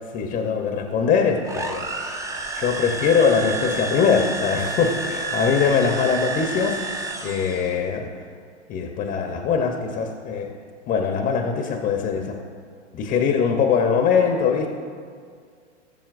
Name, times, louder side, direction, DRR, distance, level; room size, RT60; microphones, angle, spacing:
voice 1, 0.1-2.1 2.5-6.8 7.2-8.1 8.7-10.5 10.9-12.4 12.9-14.7, left 6 dB, 25° left, 3 dB, 0.8 m, -22 dB
sound 1, 1.4-7.8, right 3 dB, 10° right, 0.6 m, -30 dB
18.0 x 7.3 x 2.5 m, 2.1 s
hypercardioid pair, 115°, 36 cm